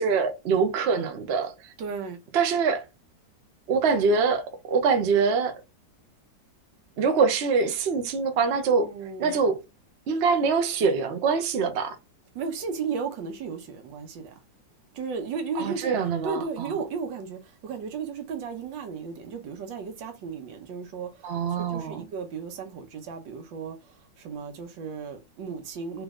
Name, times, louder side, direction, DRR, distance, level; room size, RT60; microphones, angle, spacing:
voice 1, 0.0-1.5 2.3-2.8 3.7-5.6 7.0-8.9 9.2-9.6 10.1-12.0 15.6-16.7 21.2-22.0, right 5 dB, 60° right, 0.7 m, -24 dB
voice 2, 1.8-2.2 8.8-9.4 12.3-14.3 14.9-15.9 16.2-26.0, right 5 dB, 90° right, 1.6 m, -35 dB
3.3 x 3.1 x 3.6 m
omnidirectional pair, 2.0 m